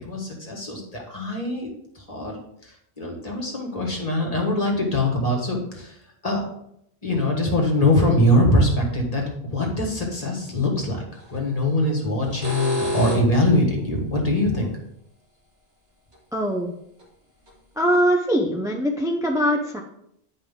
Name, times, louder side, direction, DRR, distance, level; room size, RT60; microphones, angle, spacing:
voice 1, 0.0-1.7 2.1-2.4 3.0-5.9 6.2-6.4 7.0-11.0 11.3-14.7, left 1 dB, 35° left, 0 dB, 1.8 m, -22 dB
sound 1, 11.2-11.4 12.2-13.5 16.1-16.2 17.0-17.1 17.5-17.6 17.9-18.0, left 1 dB, 70° right, 2.2 m, -28 dB
voice 2, 16.3-16.7 17.8-19.8, equal, 5° right, 1 dB, 0.5 m, -22 dB
8.7 x 5.1 x 3.7 m, 0.74 s
omnidirectional pair, 1.1 m